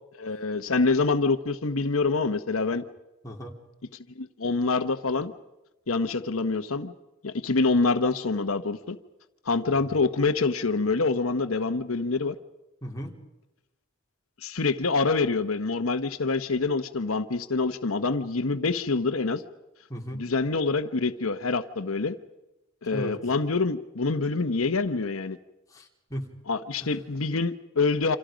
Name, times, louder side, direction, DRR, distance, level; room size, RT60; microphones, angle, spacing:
voice 1, 0.2-2.8 4.2-5.3 5.9-6.9 7.2-9.0 9.5-12.3 14.4-19.4 20.1-22.1 22.8-25.4 26.5-28.2, left 3 dB, 85° left, 9 dB, 1.0 m, -26 dB
voice 2, 12.8-13.1 19.9-20.3 22.9-23.2 25.7-26.3 26.8-27.0, equal, 15° left, 0 dB, 3.4 m, -36 dB
28.5 x 27.0 x 5.1 m, 0.97 s
head